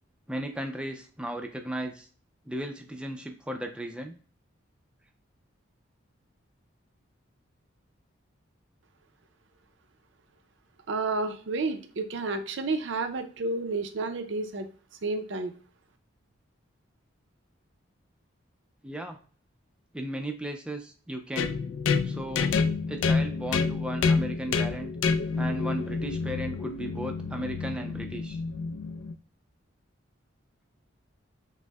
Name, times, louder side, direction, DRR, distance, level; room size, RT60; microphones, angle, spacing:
voice 1, 0.3-2.1 2.5-4.1 18.8-19.2 19.9-21.5 22.0-22.6 22.9-24.9 25.4-28.4, right 1 dB, 5° right, 5 dB, 0.4 m, -35 dB
voice 2, 10.9-14.7 15.0-15.5, right 3 dB, 65° right, 7 dB, 0.5 m, -30 dB
sound 1, 21.4-29.1, left 4 dB, 70° left, 0.3 m, -28 dB
6.1 x 2.0 x 2.2 m, 0.43 s
head